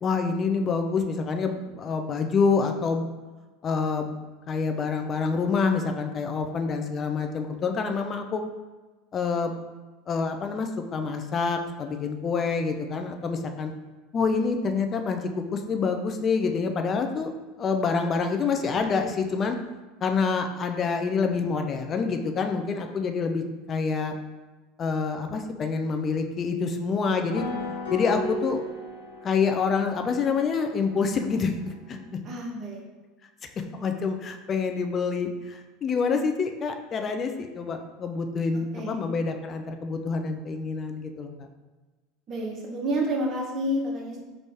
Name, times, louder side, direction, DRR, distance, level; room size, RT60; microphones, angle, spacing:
voice 1, 0.0-3.1 3.6-4.1 4.5-8.5 9.1-9.5 10.1-13.7 14.1-17.3 17.6-19.6 20.0-24.2 24.8-27.5 27.9-28.6 29.2-32.0 33.7-41.5, left 5 dB, 35° left, 5 dB, 0.4 m, -27 dB
sound 1, 27.3-32.0, left 2 dB, 80° left, 0.6 m, -36 dB
voice 2, 32.2-32.8 38.7-38.9 42.3-44.2, right 1 dB, 40° right, -1 dB, 0.9 m, -29 dB
3.4 x 2.5 x 3.4 m, 1.2 s
hypercardioid pair, 85°, 0 cm